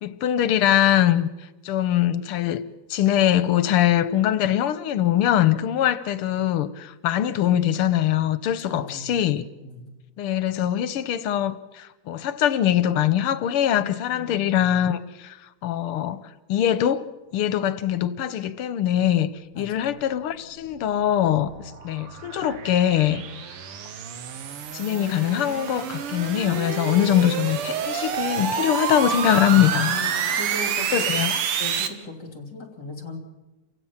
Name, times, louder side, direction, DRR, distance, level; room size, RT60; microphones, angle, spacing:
voice 1, 0.0-1.3 1.6-2.6 2.9-9.4 10.2-15.3 15.6-16.2 16.5-17.0 17.3-19.3 19.6-21.5 21.8-23.2 24.7-30.0 30.9-31.3, left 11 dB, 85° left, 1.8 m, -22 dB
voice 2, 8.6-9.2 9.6-9.9 14.1-14.5 19.5-20.0 29.9-31.1 31.6-33.2, left 2 dB, 50° left, 3.4 m, -38 dB
sound 1, 20.6-31.9, right 8 dB, 90° right, 2.1 m, -29 dB
29.0 x 16.0 x 7.2 m
omnidirectional pair, 2.4 m